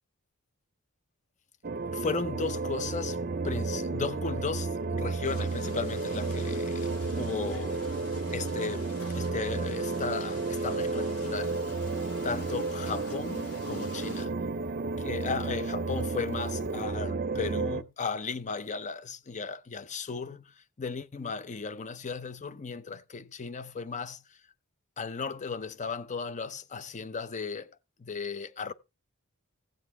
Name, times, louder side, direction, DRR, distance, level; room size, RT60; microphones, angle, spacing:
sound 1, 1.6-17.8, right 3 dB, 40° right, 0.6 m, -32 dB
voice 1, 1.9-3.2 3.4-7.9 8.3-11.7 12.2-14.4 15.0-20.4 20.8-24.2 25.0-28.7, left 5 dB, 35° left, 0.6 m, -36 dB
sound 2, 5.2-14.2, left 1 dB, 70° left, 2.1 m, -47 dB
sound 3, 11.3-16.9, right 2 dB, 10° left, 2.5 m, -58 dB
16.0 x 7.9 x 3.2 m
head